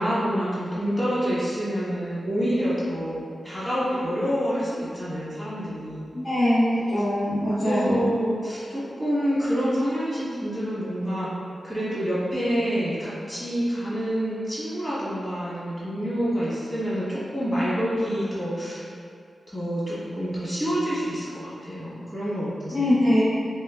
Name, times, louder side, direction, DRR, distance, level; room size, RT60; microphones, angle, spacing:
voice 1, 0.0-6.1 7.6-11.3 11.6-18.8 19.5-23.0, equal, 15° left, -11 dB, 1.4 m, -27 dB
voice 2, 6.1-6.6 6.9-8.0 22.7-23.2, left 1 dB, 50° left, -15 dB, 1.0 m, -22 dB
3.6 x 3.2 x 2.4 m, 2.4 s
wide cardioid pair, 150°, 0 cm